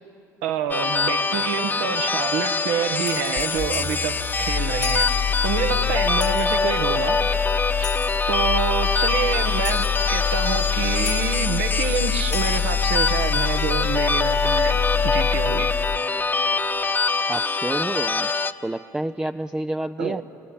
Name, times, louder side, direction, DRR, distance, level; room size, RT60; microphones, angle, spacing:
voice 1, 0.4-7.3 7.8-7.9 8.3-14.8 15.0-15.7 20.0-20.2, right 8 dB, 70° right, 7 dB, 1.4 m, -27 dB
sound 1, 0.7-18.5, left 4 dB, 20° left, 1.1 m, -24 dB
sound 2, 3.0-4.1 4.8-5.3 6.2-6.8 7.8-8.4 9.6-10.1 11.1-11.6 12.2-12.9, left 8 dB, 85° left, 1.6 m, -35 dB
sound 3, 3.4-16.0, left 9 dB, 35° left, 0.7 m, -26 dB
voice 2, 17.3-18.3 18.6-20.2, right 1 dB, 10° right, 8 dB, 0.5 m, -29 dB
26.0 x 20.0 x 9.9 m, 2.8 s
hypercardioid pair, 60°, 9 cm